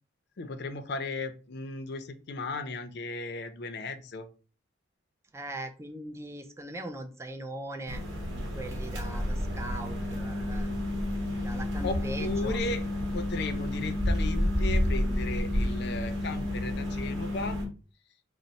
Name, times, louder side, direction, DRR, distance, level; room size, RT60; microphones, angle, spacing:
voice 1, 0.4-4.3 11.8-12.8 13.1-17.6, left 3 dB, 55° left, 9 dB, 0.5 m, -36 dB
voice 2, 5.3-8.0 8.3-10.7 11.0-11.1 11.4-12.6, right 1 dB, 15° right, 5 dB, 0.4 m, -40 dB
sound 1, 7.9-17.6, left 1 dB, 65° right, 1.1 m, -30 dB
4.1 x 2.0 x 4.0 m, 0.36 s
head